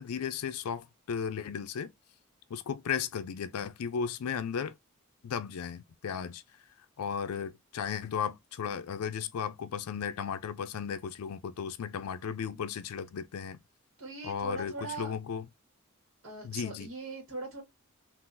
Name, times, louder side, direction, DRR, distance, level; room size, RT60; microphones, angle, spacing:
voice 1, 0.0-1.9 2.5-4.8 5.2-6.4 7.0-13.6 14.2-15.5 16.4-16.9, left 7 dB, 85° left, 0.4 m, -35 dB
voice 2, 14.0-15.1 16.2-17.6, right 3 dB, 60° right, 1.4 m, -40 dB
3.7 x 2.5 x 2.4 m
head